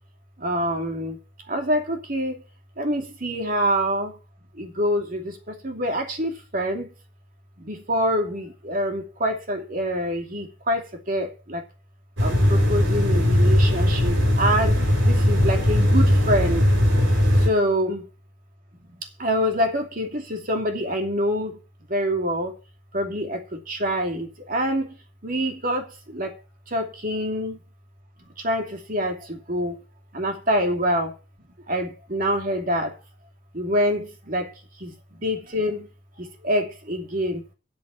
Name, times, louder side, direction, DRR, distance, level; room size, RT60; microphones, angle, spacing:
voice 1, 0.4-1.2 1.5-2.3 2.8-4.1 4.6-6.9 7.6-11.6 12.2-14.8 15.1-16.6 17.4-18.0 19.2-21.5 21.9-22.5 22.9-23.4 23.7-24.9 25.2-26.3 26.7-27.6 28.4-29.8 30.1-31.1 31.7-32.9 33.5-34.5 34.8-34.9 35.2-35.9 36.4-37.4, equal, 45° right, 2.7 m, -25 dB
sound 1, 12.2-17.5, left 1 dB, 85° right, 5.8 m, -19 dB
8.2 x 7.3 x 7.8 m
head